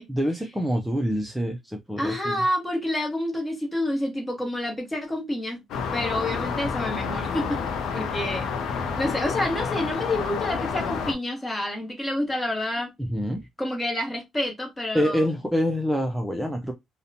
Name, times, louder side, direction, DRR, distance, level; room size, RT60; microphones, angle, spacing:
voice 1, 0.1-2.4 13.0-13.4 14.9-16.7, equal, 5° right, 0.4 m, -26 dB
voice 2, 2.0-5.6 5.9-7.4 7.9-12.9 13.6-15.3, left 1 dB, 15° left, 0.9 m, -28 dB
sound 1, 5.7-11.1, left 6 dB, 80° left, 0.5 m, -29 dB
2.7 x 2.1 x 2.6 m
cardioid pair, 90°, 0 cm